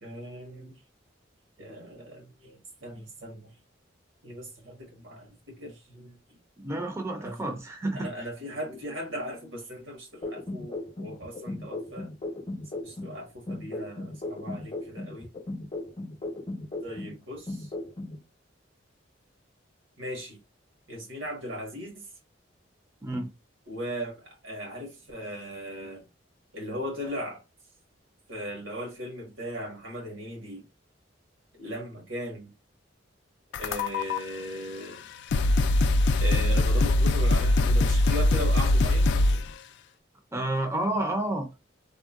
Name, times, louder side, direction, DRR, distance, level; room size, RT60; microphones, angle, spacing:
voice 1, 0.0-0.8 1.6-3.5 4.2-6.2 7.2-7.4 7.9-12.1 12.8-15.3 16.8-17.7 20.0-20.4 20.9-22.1 23.7-26.1 26.5-27.4 28.3-30.6 31.5-32.5 33.6-35.1 36.2-39.1, equal, 85° right, 1.4 m, -38 dB
voice 2, 6.6-8.1 23.0-23.3 40.3-41.6, right 1 dB, 15° right, 0.5 m, -30 dB
sound 1, 10.2-13.2 13.5-17.2 17.5-18.2, left 2 dB, 30° left, 0.7 m, -36 dB
sound 2, 33.5-34.2 34.9-35.0 35.3-39.5, left 2 dB, 65° left, 0.3 m, -22 dB
3.6 x 2.1 x 2.4 m
head